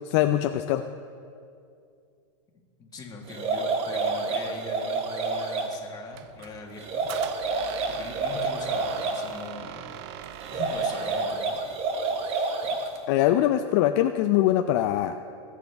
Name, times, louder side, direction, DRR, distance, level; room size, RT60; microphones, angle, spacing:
voice 1, 0.1-0.8 12.3-12.5 13.1-15.2, left 12 dB, 55° left, 7 dB, 0.5 m, -23 dB
voice 2, 2.5-7.1 7.9-9.9 10.5-11.6, left 3 dB, 25° left, 0 dB, 1.8 m, -42 dB
sound 1, 3.3-5.7 6.8-9.2 10.4-13.0, right 3 dB, 35° right, 1.2 m, -28 dB
Squeak, 6.1-11.4, right 10 dB, 55° right, 0.6 m, -42 dB
21.0 x 7.5 x 3.5 m, 2.4 s
supercardioid pair, 130°, 16 cm